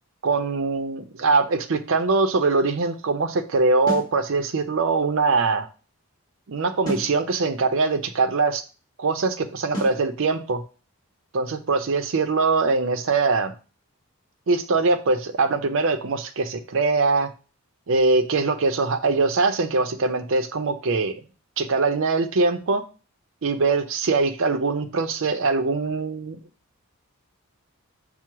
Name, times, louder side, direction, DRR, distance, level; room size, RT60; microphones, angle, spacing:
voice 1, 0.2-5.7 6.5-8.6 9.0-10.6 11.3-13.5 14.5-17.3 17.9-21.2 21.6-22.8 23.4-26.4, right 3 dB, 60° right, 8 dB, 0.5 m, -22 dB
sound 1, 3.9-4.2 6.9-7.2 9.7-10.0, equal, 20° left, 1.5 m, -30 dB
5.9 x 2.0 x 4.5 m, 0.35 s
head